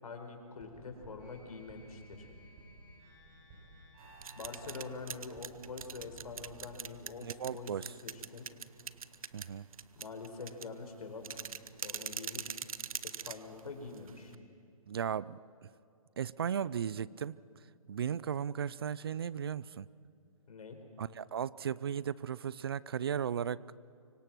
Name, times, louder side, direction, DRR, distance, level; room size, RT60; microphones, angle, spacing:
voice 1, 0.0-2.3 4.3-7.7 8.0-8.5 10.0-11.5 11.8-12.6 13.0-14.3 20.5-20.8, left 4 dB, 80° left, 5 dB, 4.5 m, -45 dB
sound 1, 0.6-6.8, right 1 dB, 25° right, 7.4 m, -55 dB
sound 2, 4.0-14.4, right 7 dB, 70° right, 0.9 m, -44 dB
voice 2, 7.2-7.9 9.3-9.7 14.9-15.7 16.2-17.4 17.9-19.9 21.0-23.6, right 8 dB, 40° right, 21 dB, 0.4 m, -36 dB
25.0 x 24.5 x 6.1 m, 2.7 s
hypercardioid pair, 170°, 19 cm